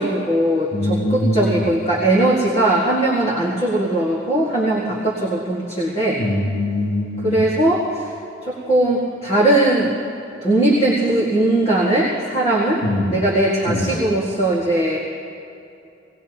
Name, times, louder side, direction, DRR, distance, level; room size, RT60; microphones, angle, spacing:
voice 1, 0.0-6.2 7.2-8.1 8.4-9.9 10.4-12.8 13.1-15.0, right 1 dB, 30° left, -7 dB, 1.9 m, -19 dB
voice 2, 0.7-1.6 6.2-7.4 12.8-13.1 13.7-13.9, left 1 dB, 70° left, -8 dB, 3.2 m, -22 dB
19.0 x 19.0 x 3.0 m, 2.7 s
head